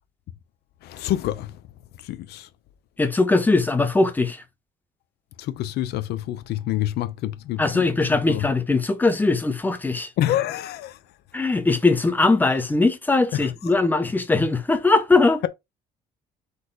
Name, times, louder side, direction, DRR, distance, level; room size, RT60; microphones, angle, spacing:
voice 1, 0.8-1.6 2.0-2.5 5.4-7.9 8.3-8.5 10.2-11.0 12.5-12.6 13.3-13.8, left 13 dB, 75° left, 0.6 m, -27 dB
voice 2, 3.0-4.4 7.6-10.1 11.3-15.4, left 3 dB, 10° left, 0.9 m, -20 dB
4.1 x 3.2 x 3.9 m
cardioid pair, 110°, 17 cm